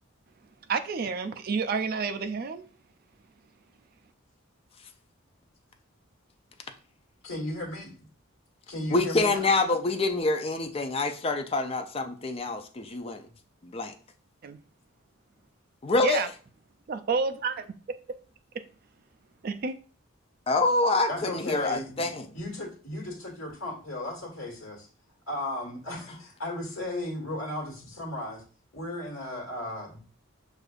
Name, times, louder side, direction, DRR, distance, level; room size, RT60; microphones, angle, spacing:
voice 1, 0.7-2.6 14.4-14.6 16.0-16.3 16.9-17.7 19.4-19.8, right 5 dB, 45° right, 9 dB, 0.3 m, -29 dB
voice 2, 7.2-7.9 8.7-9.5 21.1-24.9 25.3-28.4 28.7-30.0, left 1 dB, 75° left, -1 dB, 1.5 m, -35 dB
voice 3, 8.9-13.3 13.6-13.9 15.8-16.3 20.5-22.3, left 3 dB, 25° left, 6 dB, 0.4 m, -26 dB
6.4 x 2.5 x 2.4 m, 0.38 s
head